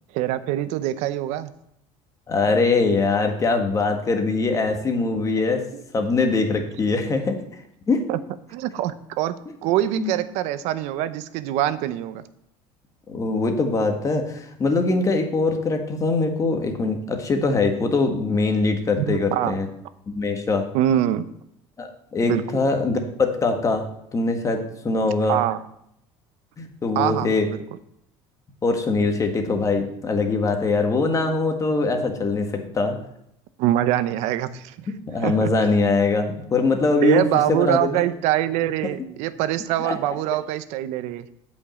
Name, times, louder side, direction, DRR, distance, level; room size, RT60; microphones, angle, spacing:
voice 1, 0.1-1.5 5.7-5.8 8.1-8.2 8.5-12.2 19.0-19.6 20.7-21.3 22.2-22.4 25.3-25.6 27.0-27.6 33.6-34.9 35.2-35.5 37.0-41.3, right 13 dB, 75° right, 14 dB, 0.7 m, -24 dB
voice 2, 2.3-5.6 5.9-7.4 7.9-8.0 9.5-9.6 9.9-10.1 13.1-19.7 20.1-20.6 21.8-23.8 24.1-25.4 26.6-27.5 28.6-33.0 35.1-38.0 39.8-40.0, left 3 dB, 30° left, 5 dB, 1.6 m, -22 dB
8.3 x 5.5 x 7.7 m, 0.76 s
cardioid pair, 125°, 12 cm